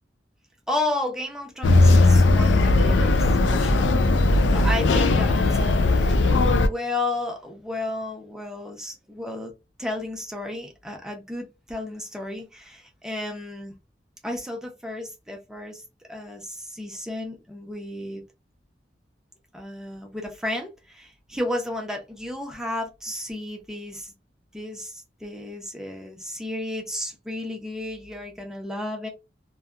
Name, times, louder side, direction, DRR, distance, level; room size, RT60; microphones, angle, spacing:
voice 1, 0.7-3.9 4.5-6.2 6.4-9.5 9.8-13.8 14.2-15.8 16.1-18.2 19.5-24.1 24.5-29.1, left 1 dB, 5° right, 0.6 m, -33 dB
sound 1, 1.6-6.7, left 2 dB, 90° left, 0.4 m, -18 dB
2.6 x 2.2 x 2.4 m
head